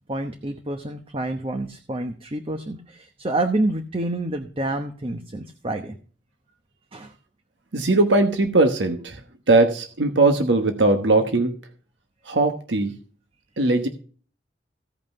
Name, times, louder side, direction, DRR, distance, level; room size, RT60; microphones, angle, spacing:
voice 1, 0.1-6.0 6.9-7.1, right 2 dB, 30° right, 6 dB, 1.0 m, -28 dB
voice 2, 7.7-9.2 9.5-11.5 12.3-12.9 13.6-13.9, right 2 dB, 80° right, 6 dB, 1.2 m, -19 dB
16.0 x 5.7 x 5.4 m, 0.41 s
head